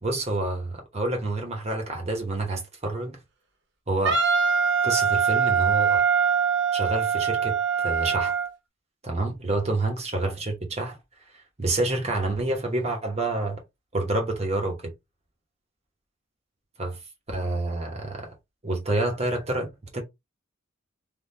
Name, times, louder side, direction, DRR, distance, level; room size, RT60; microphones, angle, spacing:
voice 1, 0.0-3.2 3.9-4.2 4.8-6.1 6.7-7.5 7.8-8.4 9.0-11.0 11.6-13.6 13.9-14.9 16.8-17.0 17.3-18.3 18.6-20.0, right 2 dB, 30° right, 1.0 m, -28 dB
Wind instrument woodwind instrument, 4.0-8.5, right 6 dB, 55° right, 0.6 m, -23 dB
3.5 x 2.4 x 2.7 m
head